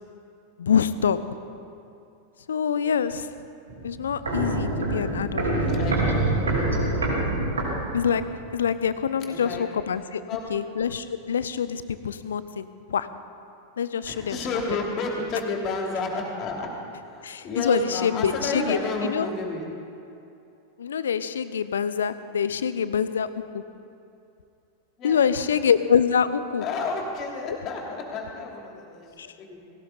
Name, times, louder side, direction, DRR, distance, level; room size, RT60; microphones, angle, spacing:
voice 1, 0.6-1.2 2.5-3.3 3.8-5.5 7.9-8.2 8.5-10.2 10.5-13.1 13.8-14.6 17.2-19.3 20.8-23.6 25.0-26.6 27.4-27.6 29.2-29.3, left 7 dB, 65° left, 14 dB, 0.7 m, -25 dB
Walk footsteps, 3.7-8.4 8.7-8.8, right 2 dB, 70° right, 3.5 m, -26 dB
voice 2, 5.8-6.2 9.1-9.6 10.3-10.4 14.1-16.7 17.0-19.6 25.0-25.5 26.6-29.1 29.4-29.6, left 3 dB, 35° left, 0 dB, 3.0 m, -31 dB
18.5 x 17.5 x 4.0 m, 2.7 s
figure-of-eight pair, 90°, 0 cm